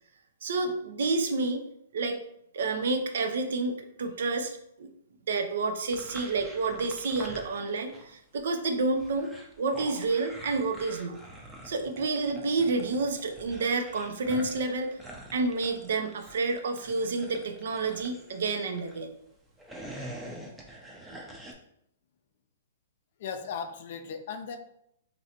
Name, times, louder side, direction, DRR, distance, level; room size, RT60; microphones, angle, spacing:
voice 1, 0.4-1.6 1.9-2.2 2.5-4.9 5.3-9.3 9.6-11.2 11.6-14.9 15.3-19.1, right 3 dB, 75° right, 6 dB, 0.4 m, -29 dB
sound 1, 5.9-8.1 8.4-19.0 19.5-21.5, right 1 dB, 5° right, 0.5 m, -46 dB
voice 2, 23.2-24.6, left 6 dB, 60° left, 7 dB, 0.4 m, -37 dB
3.1 x 2.6 x 2.8 m, 0.74 s
hypercardioid pair, 135°, 0 cm